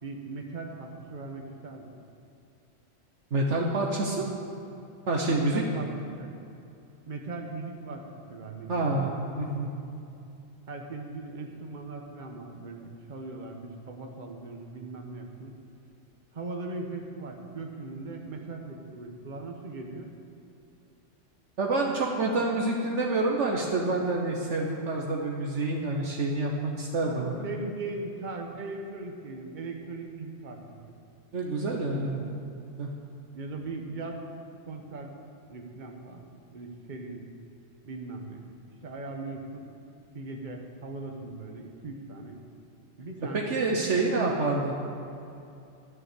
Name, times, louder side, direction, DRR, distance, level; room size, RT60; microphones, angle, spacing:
voice 1, 0.0-1.9 5.2-5.9 6.2-6.3 7.1-9.2 10.7-15.5 16.3-20.1 27.0-30.8 31.9-32.2 33.3-34.2 34.7-35.1 35.5-37.3 37.8-38.5 38.8-39.7 40.1-42.4 43.0-44.2, right 3 dB, 40° right, 2 dB, 1.3 m, -39 dB
voice 2, 3.3-4.3 5.1-5.8 8.7-9.7 21.6-27.4 31.3-32.3 32.8-32.9 43.3-44.7, right 2 dB, 65° right, 0 dB, 1.3 m, -27 dB
12.5 x 7.4 x 8.2 m, 2.7 s
omnidirectional pair, 1.3 m